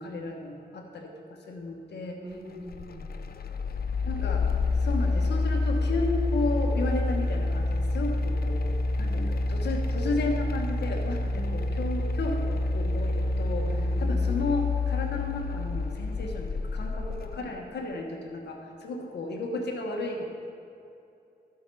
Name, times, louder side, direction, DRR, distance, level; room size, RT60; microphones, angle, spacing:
voice 1, 0.0-2.2 4.0-20.2, left 2 dB, 85° left, 1 dB, 1.3 m, -33 dB
voice 2, 2.2-3.1 8.9-9.5 11.2-11.8 13.6-14.3 17.4-17.6, right 1 dB, 20° right, -2 dB, 2.4 m, -43 dB
sound 1, 2.7-17.4, left 2 dB, 65° left, 0.6 m, -28 dB
12.5 x 5.8 x 5.5 m, 2.7 s
cardioid pair, 50°, 17 cm